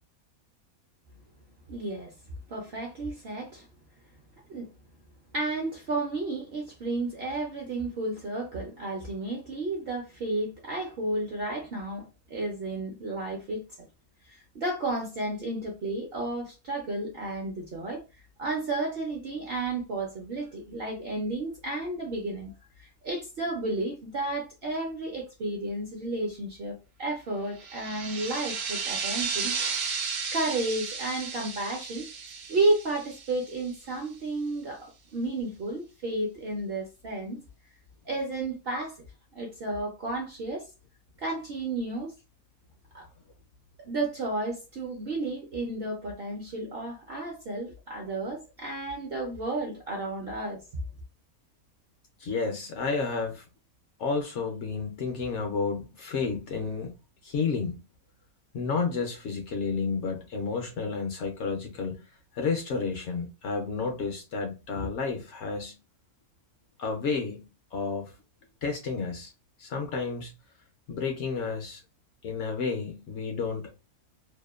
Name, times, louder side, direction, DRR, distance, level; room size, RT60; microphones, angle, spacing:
voice 1, 1.7-2.1 2.5-3.7 4.5-4.7 5.3-13.9 14.3-18.0 18.4-22.5 22.8-29.5 30.3-32.1 32.5-37.4 38.1-39.0 39.3-40.7 41.2-42.1 42.9-43.1 43.8-50.6, right 2 dB, 60° right, 0.6 m, -32 dB
sound 1, 27.6-33.9, right 5 dB, 80° right, 1.1 m, -34 dB
voice 2, 52.2-53.5 54.0-56.9 57.2-57.8 58.5-62.0 62.3-65.8 66.8-68.1 68.6-69.3 69.6-70.3 70.9-71.8 72.2-73.7, left 4 dB, 65° left, 0.7 m, -31 dB
2.8 x 2.1 x 2.3 m
omnidirectional pair, 1.5 m